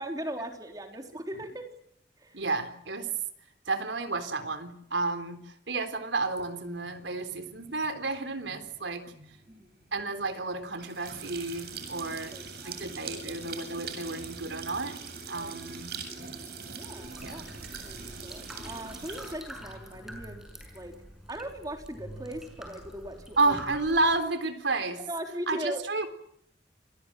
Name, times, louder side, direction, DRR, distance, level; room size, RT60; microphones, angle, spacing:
voice 1, 0.0-1.7 2.2-2.5 9.5-9.7 12.1-12.8 15.4-15.5 16.7-17.4 17.7-20.9 21.3-23.6 25.1-25.8, right 1 dB, 20° right, 4 dB, 3.8 m, -39 dB
voice 2, 2.3-3.1 3.7-9.1 9.9-12.3 12.6-15.0 15.3-15.9 17.2-17.5 23.4-25.0 25.5-26.1, right 3 dB, 85° right, 9 dB, 3.8 m, -31 dB
sound 1, 6.4-19.3, right 5 dB, 60° right, 7.5 m, -43 dB
sound 2, 17.0-24.2, equal, 5° right, 6.6 m, -46 dB
28.5 x 21.5 x 7.7 m, 0.69 s
head